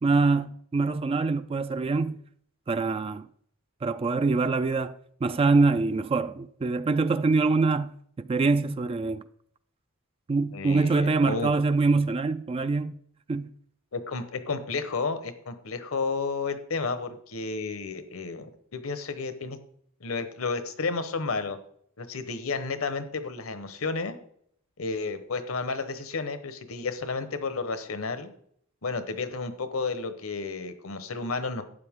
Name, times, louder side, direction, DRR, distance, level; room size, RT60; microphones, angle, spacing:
voice 1, 0.0-2.2 2.7-3.3 3.8-5.0 5.2-7.9 8.2-9.2 10.3-12.9 13.3-13.5, right 3 dB, 25° right, 0.3 m, -24 dB
voice 2, 10.5-11.5 13.9-19.6 20.0-21.6 22.0-24.2 24.8-28.3 28.8-31.6, left 4 dB, 75° left, 1.1 m, -32 dB
12.0 x 8.6 x 3.6 m
head